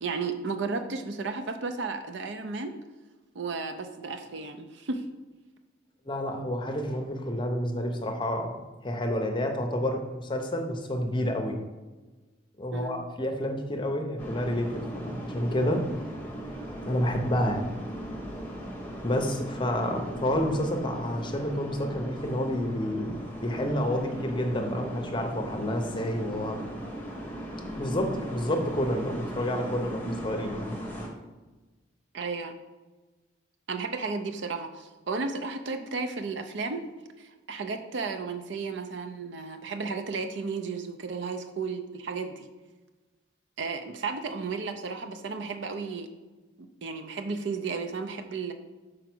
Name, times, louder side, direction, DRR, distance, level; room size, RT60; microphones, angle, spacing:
voice 1, 0.0-2.8 3.3-5.0 12.7-13.1 32.1-32.6 33.7-36.9 37.2-42.5 43.6-46.1 46.6-48.5, right 4 dB, 70° right, 7 dB, 0.5 m, -33 dB
voice 2, 6.1-8.5 8.8-11.6 12.6-15.8 16.9-17.7 19.0-23.1 23.4-26.6 27.8-30.8, left 1 dB, 25° left, 3 dB, 0.7 m, -29 dB
sound 1, 14.2-31.1, equal, 10° left, 1.0 m, -38 dB
5.0 x 4.6 x 6.0 m, 1.2 s
head